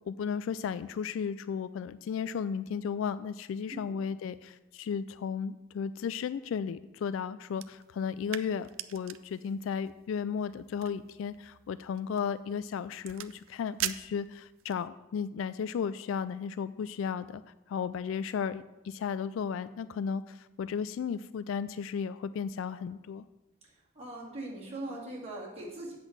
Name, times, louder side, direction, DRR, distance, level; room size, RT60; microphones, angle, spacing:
voice 1, 0.1-17.4 17.7-23.2, left 6 dB, 75° left, 14 dB, 0.3 m, -34 dB
sound 1, 7.5-14.9, right 12 dB, 90° right, 0.5 m, -43 dB
voice 2, 23.6-26.0, right 2 dB, 30° right, -5 dB, 2.7 m, -41 dB
8.0 x 5.9 x 7.4 m, 1.0 s
head